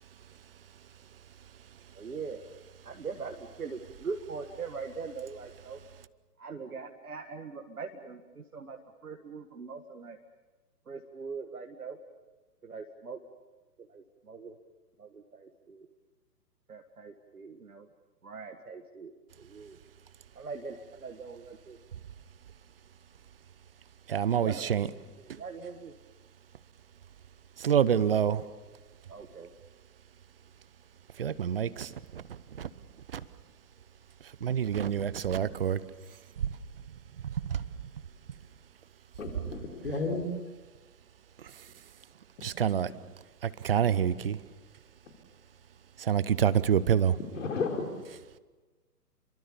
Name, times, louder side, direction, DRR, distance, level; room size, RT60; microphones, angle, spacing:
voice 1, 2.0-2.4 2.8-5.8 6.4-10.2 10.9-12.0 12.6-13.2 13.8-14.6 15.0-15.9 16.7-17.9 18.2-19.8 20.4-21.8 24.4-25.9 29.1-29.5, right 5 dB, 65° right, 1.9 m, -42 dB
voice 2, 24.1-24.9 27.6-28.4 31.2-31.9 32.6-32.7 34.4-35.8 37.5-37.6 42.4-42.9 43.4-44.4 46.1-47.2, right 8 dB, 35° right, 0.9 m, -26 dB
voice 3, 39.2-40.2 47.3-47.8, left 4 dB, 50° left, 4.1 m, -32 dB
29.0 x 23.5 x 7.0 m
figure-of-eight pair, 130°, 48 cm